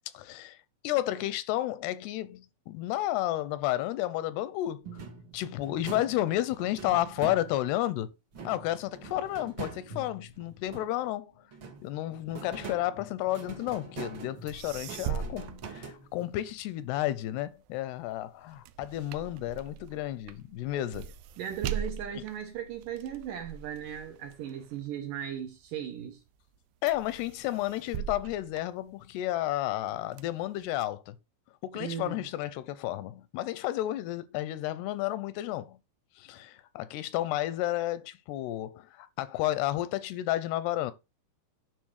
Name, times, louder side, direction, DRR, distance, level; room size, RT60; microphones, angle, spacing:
voice 1, 0.1-0.6 0.8-4.9 5.3-8.1 8.4-11.3 11.8-21.1 26.8-31.2 31.6-35.8 36.2-40.9, left 14 dB, 85° left, 2.7 m, -32 dB
sound 1, 4.8-7.9 8.3-11.1 11.5-16.4, right 4 dB, 55° right, 1.4 m, -44 dB
sound 2, 14.5-16.6 17.0-25.7 26.2-26.6 26.9-29.4 29.8-30.8, right 9 dB, 90° right, 2.7 m, -40 dB
voice 2, 21.4-26.2 31.8-32.3, right 9 dB, 70° right, 2.2 m, -37 dB
9.6 x 3.9 x 6.4 m
omnidirectional pair, 4.7 m